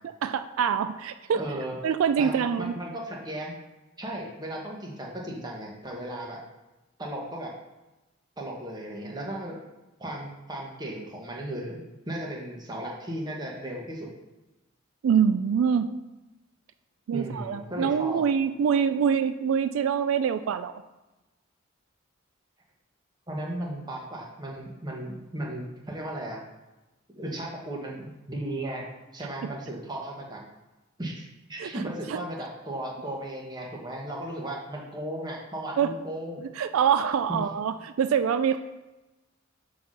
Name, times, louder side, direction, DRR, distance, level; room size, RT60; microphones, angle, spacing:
voice 1, 0.2-1.4 1.8-2.7 15.0-15.9 17.1-20.7 29.4-29.5 31.6-31.8 32.1-32.2 35.8-35.9 36.6-38.6, right 7 dB, 85° right, 11 dB, 0.3 m, -25 dB
voice 2, 1.3-1.8 2.2-3.5 4.0-6.4 7.0-7.5 8.4-9.6 10.0-14.1 17.1-18.2 23.3-26.4 27.1-28.9 29.1-30.4 31.0-36.4 37.3-37.4, right 1 dB, 20° right, -2 dB, 1.3 m, -36 dB
5.9 x 4.1 x 6.2 m, 1.1 s
head